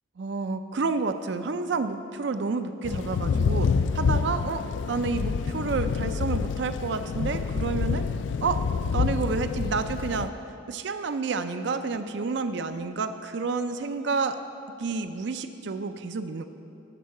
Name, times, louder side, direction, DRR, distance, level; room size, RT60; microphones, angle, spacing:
voice 1, 0.2-8.1 8.4-8.6 8.9-10.3 10.7-14.4 14.8-16.4, right 4 dB, 60° right, 10 dB, 0.4 m, -29 dB
Thunder / Rain, 2.8-10.3, left 5 dB, 65° left, 0.3 m, -27 dB
12.5 x 4.6 x 7.0 m, 2.7 s
head